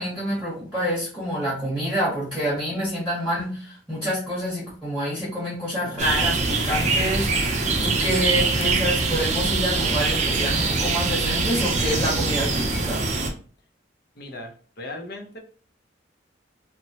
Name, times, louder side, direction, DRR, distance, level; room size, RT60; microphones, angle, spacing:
voice 1, 0.0-13.0, equal, 5° right, -7 dB, 0.9 m, -27 dB
sound 1, 6.0-13.3, right 3 dB, 40° right, 0.5 m, -23 dB
voice 2, 14.2-15.4, left 2 dB, 55° left, 3 dB, 0.6 m, -37 dB
2.9 x 2.1 x 2.8 m, 0.41 s
head